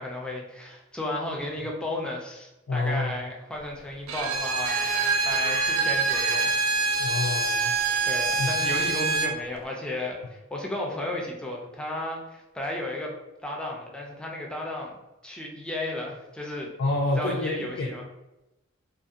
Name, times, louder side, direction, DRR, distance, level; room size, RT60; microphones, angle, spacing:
voice 1, 0.0-6.5 6.8-7.2 8.0-13.1 13.4-15.0 15.2-16.7 17.1-18.0, left 1 dB, 5° left, -1 dB, 0.4 m, -34 dB
voice 2, 2.7-3.1 7.0-7.7 8.4-8.5 16.8-17.9, left 2 dB, 80° left, -2 dB, 0.4 m, -28 dB
Bowed string instrument, 4.1-9.4, right 3 dB, 85° right, 0.3 m, -25 dB
Bird, 4.2-10.1, right 1 dB, 70° right, 0.9 m, -42 dB
2.7 x 2.4 x 2.4 m, 0.95 s
head